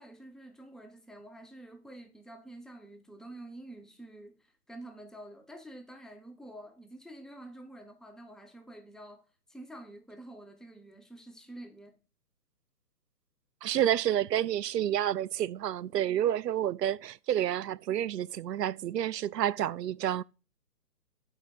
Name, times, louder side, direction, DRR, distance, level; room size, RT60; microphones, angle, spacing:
voice 1, 0.0-12.0, right 1 dB, ahead, 0.3 m, -48 dB
voice 2, 13.6-20.2, right 11 dB, 85° right, 0.6 m, -29 dB
8.9 x 4.8 x 5.3 m
hypercardioid pair, 165°, 48 cm